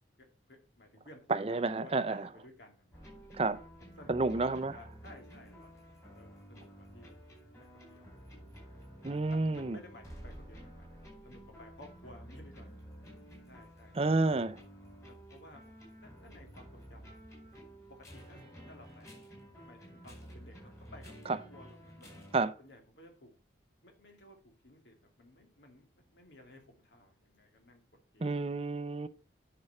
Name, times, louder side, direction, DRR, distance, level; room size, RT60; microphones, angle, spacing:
voice 1, 0.2-3.0 3.8-7.1 7.6-8.8 9.3-12.7 13.5-14.2 15.1-15.6 16.0-17.2 17.9-19.2 19.7-22.1 22.6-23.3 23.8-27.8 28.1-28.5, left 1 dB, 75° left, 2.6 m, -56 dB
voice 2, 1.3-2.3 3.3-3.6 4.1-4.8 9.0-9.8 13.9-14.6 21.3-21.4 22.3-22.5 28.2-29.1, right 3 dB, 35° right, 0.5 m, -30 dB
sound 1, 2.9-22.4, equal, 15° left, 4.6 m, -51 dB
9.7 x 6.0 x 4.1 m
head